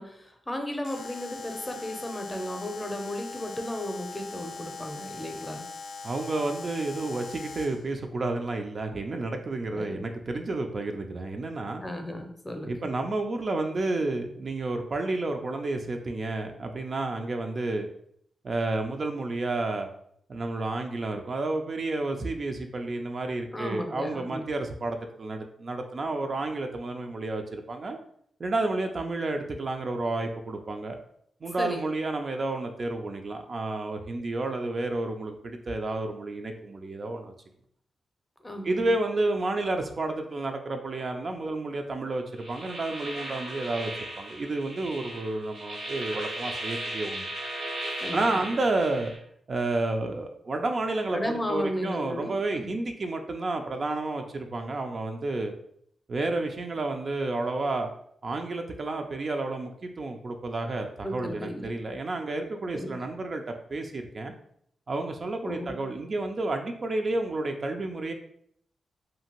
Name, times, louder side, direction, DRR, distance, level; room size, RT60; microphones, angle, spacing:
voice 1, 0.0-5.6 9.7-10.0 11.8-12.9 23.5-24.4 31.6-31.8 38.4-38.9 48.0-48.5 51.1-52.8 61.0-61.7 62.7-63.0 65.4-65.8, left 1 dB, 15° left, 4 dB, 0.5 m, -35 dB
Alarm, 0.8-7.9, left 4 dB, 70° left, 0.3 m, -41 dB
voice 2, 6.0-11.8 12.6-17.9 18.4-19.9 20.3-28.0 28.4-31.0 31.4-37.3 38.6-47.3 48.1-49.1 49.5-51.2 51.5-55.5 56.1-57.9 58.2-63.4 63.7-64.3 64.9-68.1, right 2 dB, 50° right, 4 dB, 0.3 m, -30 dB
sound 1, 42.4-49.2, right 1 dB, 80° right, 0.9 m, -36 dB
2.6 x 2.4 x 2.9 m, 0.68 s
cardioid pair, 60°, 0 cm